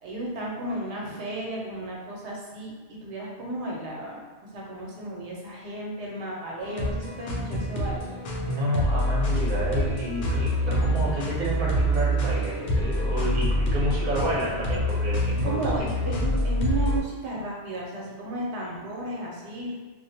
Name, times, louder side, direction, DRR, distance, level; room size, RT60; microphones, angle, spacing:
voice 1, 0.0-2.7 3.0-4.2 4.5-8.2 15.4-19.7, right 1 dB, 85° right, -3 dB, 0.9 m, -33 dB
sound 1, 6.6-17.0, equal, 85° left, 0.9 m, -26 dB
voice 2, 8.4-16.2, equal, 50° right, -5 dB, 0.7 m, -30 dB
2.4 x 2.0 x 2.6 m, 1.3 s
omnidirectional pair, 1.1 m